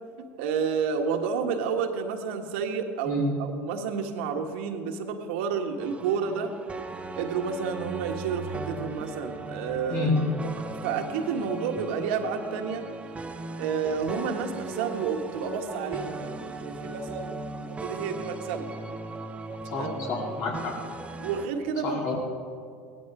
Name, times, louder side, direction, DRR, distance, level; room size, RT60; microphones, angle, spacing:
voice 1, 0.2-6.5 7.2-10.1 10.4-12.9 13.6-18.7 19.8-20.1 21.2-22.0, right 6 dB, 75° right, 4 dB, 1.5 m, -30 dB
sound 1, 5.8-21.5, right 3 dB, 20° right, 1.0 m, -38 dB
voice 2, 19.6-20.7 21.8-22.1, left 3 dB, 60° left, -2 dB, 4.1 m, -29 dB
17.0 x 12.5 x 4.9 m, 2.1 s
hypercardioid pair, 90°, 6 cm